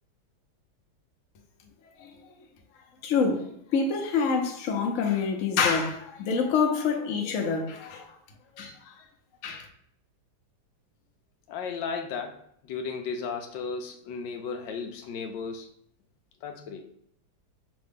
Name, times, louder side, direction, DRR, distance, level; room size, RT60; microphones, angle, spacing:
voice 1, 3.0-8.1 8.6-8.7 9.4-9.7, left 5 dB, 55° left, 1.0 m, -26 dB
voice 2, 11.5-15.7 16.4-16.9, left 5 dB, 75° left, 1.3 m, -35 dB
5.7 x 2.6 x 3.6 m
omnidirectional pair, 2.1 m